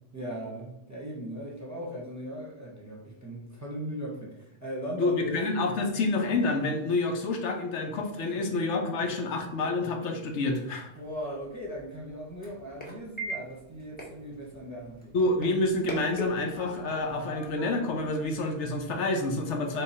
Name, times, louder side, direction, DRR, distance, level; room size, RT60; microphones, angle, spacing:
voice 1, 0.1-5.4 8.5-8.6 9.1-9.2 10.9-15.1, equal, 15° right, -3 dB, 0.9 m, -38 dB
voice 2, 5.0-10.9 15.1-19.8, left 2 dB, 80° left, 3 dB, 1.0 m, -28 dB
sound 1, 11.0-18.9, equal, 10° left, 1.0 m, -42 dB
3.8 x 3.2 x 4.1 m, 0.79 s
omnidirectional pair, 1.2 m